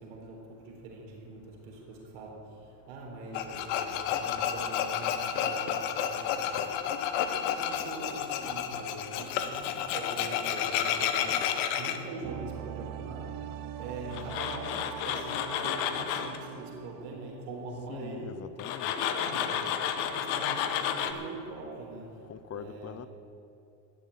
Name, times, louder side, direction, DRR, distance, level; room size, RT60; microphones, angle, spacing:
voice 1, 0.0-6.8 7.1-13.4 13.8-18.4 18.9-19.6 20.0-22.2 22.5-23.1, right 3 dB, 90° right, -1 dB, 4.3 m, -43 dB
Tools, 3.3-12.0 14.1-16.4 18.6-21.1, left 9 dB, 80° left, 1.2 m, -31 dB
sound 1, 12.2-17.9 18.2-18.3, right 10 dB, 45° right, 0.7 m, -42 dB
voice 2, 17.9-18.9 22.3-23.1, left 8 dB, 35° left, 14 dB, 0.6 m, -42 dB
14.0 x 7.5 x 9.3 m, 2.7 s
supercardioid pair, 110°, 47 cm